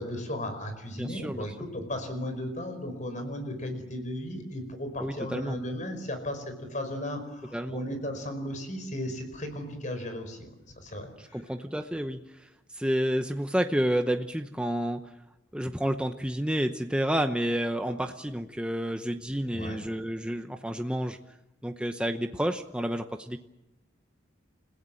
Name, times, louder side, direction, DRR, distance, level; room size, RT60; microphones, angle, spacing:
voice 1, 0.0-6.4 6.7-10.5 10.8-11.4 19.5-19.8, left 1 dB, 40° left, 7 dB, 5.0 m, -35 dB
voice 2, 1.0-1.5 5.0-5.6 7.5-7.8 11.2-12.2 12.7-15.0 15.5-21.2 21.6-23.4, equal, 5° right, 6 dB, 0.8 m, -30 dB
29.5 x 16.5 x 7.7 m, 0.93 s
head